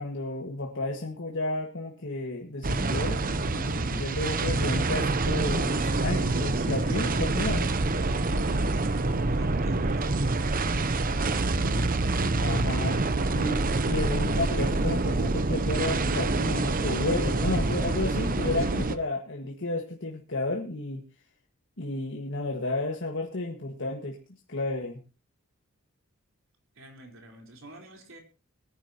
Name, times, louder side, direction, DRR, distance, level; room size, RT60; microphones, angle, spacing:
voice 1, 0.0-7.7 12.4-13.0 13.3-21.0 21.8-24.2 24.5-25.0, left 2 dB, 60° left, 1 dB, 1.8 m, -32 dB
sound 1, 2.6-19.0, right 2 dB, 40° right, 0.9 m, -26 dB
voice 2, 6.5-13.2 18.6-19.0 26.7-28.2, right 1 dB, 65° right, 2 dB, 4.1 m, -46 dB
22.0 x 10.5 x 2.9 m, 0.33 s
head